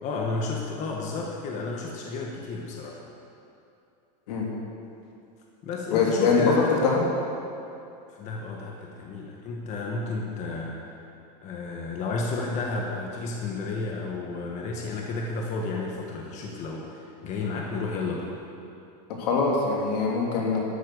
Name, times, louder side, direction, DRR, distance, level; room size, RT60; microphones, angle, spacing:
voice 1, 0.0-3.0 5.6-6.8 8.1-11.0 11.4-18.3, left 3 dB, 35° left, -1 dB, 1.4 m, -32 dB
voice 2, 5.9-7.0 19.2-20.6, left 4 dB, 80° left, -2 dB, 3.0 m, -23 dB
12.5 x 8.7 x 6.8 m, 2.6 s
supercardioid pair, 155°, 21 cm